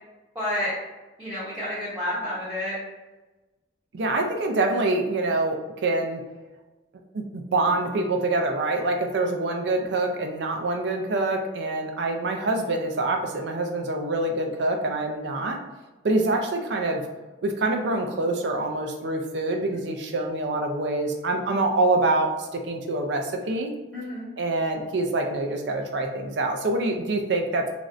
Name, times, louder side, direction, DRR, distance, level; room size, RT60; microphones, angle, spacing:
voice 1, 0.3-0.7 1.2-2.8 23.9-24.3, left 1 dB, 5° right, -12 dB, 0.7 m, -30 dB
voice 2, 3.9-6.2 7.1-15.6 16.0-17.0 17.4-23.7 24.4-27.7, right 2 dB, 65° right, 4 dB, 0.4 m, -25 dB
3.1 x 2.5 x 2.5 m, 1.1 s
head